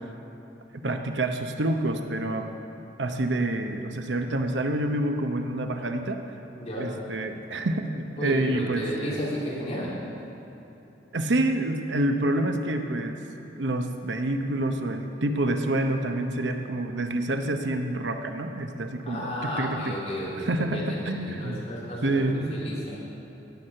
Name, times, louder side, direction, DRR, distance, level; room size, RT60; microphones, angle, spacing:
voice 1, 0.7-2.5 3.0-6.2 6.8-8.9 11.1-13.2 13.6-20.0 20.4-21.6 22.0-22.5, right 1 dB, 80° right, 5 dB, 0.8 m, -27 dB
voice 2, 6.6-6.9 8.2-9.9 19.0-23.0, equal, 35° left, -7 dB, 3.3 m, -33 dB
17.5 x 6.1 x 6.6 m, 3.0 s
head